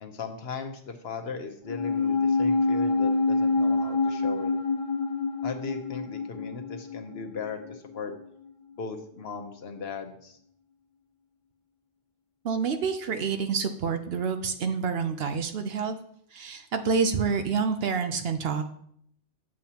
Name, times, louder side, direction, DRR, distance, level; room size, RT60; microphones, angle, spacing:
voice 1, 0.0-4.5 5.4-8.1 8.8-10.4, left 5 dB, 60° left, 4 dB, 1.0 m, -37 dB
sound 1, 1.7-8.2 8.5-8.6, left 3 dB, 30° left, 1.1 m, -27 dB
voice 2, 12.4-16.0 16.3-18.6, right 5 dB, 60° right, 7 dB, 0.8 m, -28 dB
7.6 x 7.4 x 2.9 m, 0.67 s
omnidirectional pair, 1.2 m